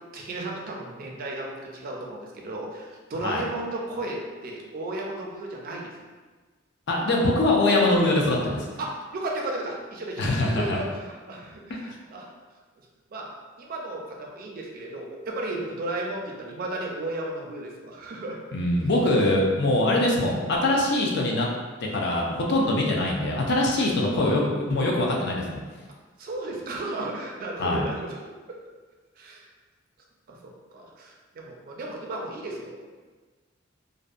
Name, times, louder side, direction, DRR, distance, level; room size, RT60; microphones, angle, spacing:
voice 1, 0.1-5.9 8.8-12.3 13.1-13.3 13.6-18.4 26.2-28.2 28.5-28.6 29.2-29.4 30.3-32.9, right 2 dB, 50° right, -1 dB, 0.4 m, -34 dB
voice 2, 6.9-8.7 10.2-10.8 11.9-12.0 18.5-21.5 21.8-25.6 27.6-27.8, left 1 dB, 60° left, -1 dB, 0.5 m, -23 dB
2.6 x 2.1 x 2.4 m, 1.3 s
head